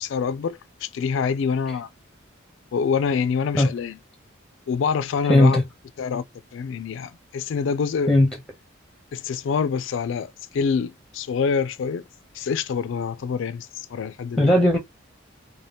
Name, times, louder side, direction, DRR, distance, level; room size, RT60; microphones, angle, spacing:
voice 1, 0.0-1.9 2.7-4.0 4.7-5.6 6.0-6.2 6.5-8.1 9.1-12.0 12.3-14.5, left 6 dB, 65° left, 0.3 m, -26 dB
voice 2, 5.3-5.6 8.1-8.3 14.4-14.8, left 1 dB, ahead, 0.6 m, -16 dB
2.7 x 2.1 x 3.3 m
head